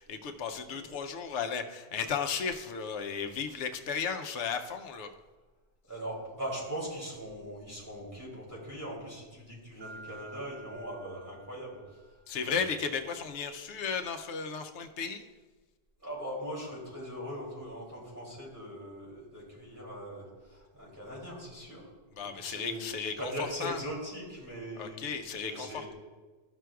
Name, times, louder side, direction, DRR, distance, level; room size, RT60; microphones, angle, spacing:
voice 1, 0.0-5.1 12.3-15.2 22.2-23.3 23.6-23.8 24.8-25.7, left 6 dB, 90° left, 7 dB, 0.9 m, -34 dB
voice 2, 5.9-12.1 12.4-12.8 13.9-14.0 16.0-21.9 22.2-22.8 23.2-25.0 25.5-25.9, equal, 15° right, -6 dB, 2.8 m, -40 dB
Mallet percussion, 9.8-12.4, right 3 dB, 45° right, 0.8 m, -51 dB
13.5 x 6.1 x 2.3 m, 1.3 s
omnidirectional pair, 1.2 m